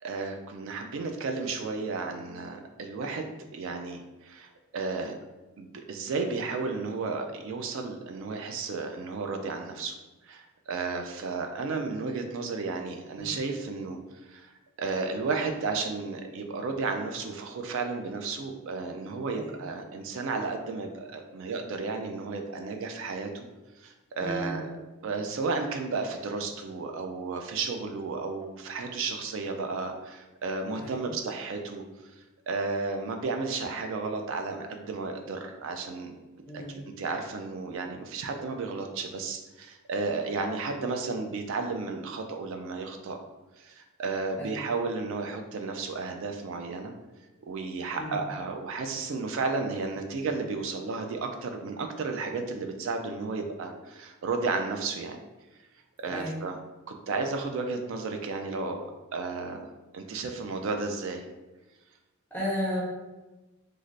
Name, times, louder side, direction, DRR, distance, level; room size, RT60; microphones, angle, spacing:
voice 1, 0.0-5.1 5.6-9.9 10.3-14.0 14.3-14.5 14.8-23.5 23.8-24.7 25.0-31.8 32.5-36.1 36.5-43.2 43.6-46.9 47.5-55.2 56.0-56.6 56.9-58.9 59.1-61.2, right 4 dB, 65° right, 5 dB, 0.3 m, -33 dB
voice 2, 24.2-24.6 30.7-31.1 36.5-36.9 44.3-44.7 48.0-48.3 56.1-56.4 62.3-62.8, equal, 10° left, -6 dB, 0.5 m, -34 dB
3.1 x 2.4 x 2.5 m, 1.1 s
head